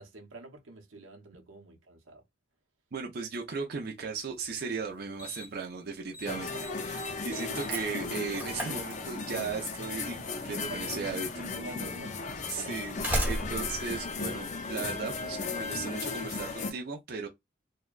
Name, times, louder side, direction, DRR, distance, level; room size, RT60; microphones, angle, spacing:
voice 1, 0.0-2.2 6.5-6.7 7.3-7.6 10.7-12.2 12.6-12.7, right 2 dB, 90° right, 0.8 m, -45 dB
voice 2, 2.9-6.5 6.8-7.0 7.2-11.4 12.5-13.0 13.3-17.3, right 5 dB, 50° right, 0.5 m, -36 dB
Slam, 4.4-4.5 5.2-5.7 5.9-6.3 6.6-9.5 10.6-10.7 11.6-11.7 12.6-15.0, right 1 dB, 10° right, 0.8 m, -36 dB
sound 1, 6.3-16.7, left 4 dB, 40° left, 0.4 m, -36 dB
2.7 x 2.2 x 2.3 m
head